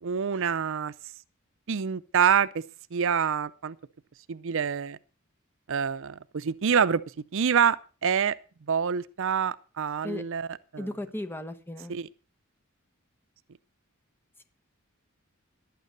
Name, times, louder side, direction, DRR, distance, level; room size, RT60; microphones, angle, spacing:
voice 1, 0.0-0.9 1.7-2.6 2.9-3.8 4.3-5.0 5.7-7.0 7.3-7.8 8.0-8.3 8.7-10.9 11.9-12.1, right 7 dB, 65° right, 0.5 m, -26 dB
voice 2, 10.8-12.0, left 1 dB, 10° left, 1.3 m, -35 dB
12.0 x 9.2 x 6.6 m
head